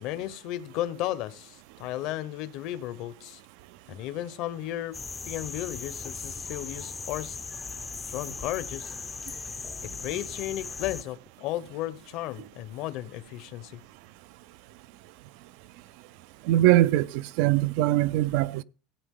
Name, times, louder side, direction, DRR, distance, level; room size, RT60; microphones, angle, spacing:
voice 1, 0.0-3.4 3.9-5.0 5.3-7.4 8.1-8.9 10.0-13.8, left 14 dB, 55° left, 0.8 m, -34 dB
sound 1, 4.9-11.0, left 5 dB, 15° left, 0.5 m, -38 dB
voice 2, 16.5-18.6, right 14 dB, 65° right, 0.4 m, -22 dB
16.0 x 8.1 x 3.7 m
cardioid pair, 155°, 0 cm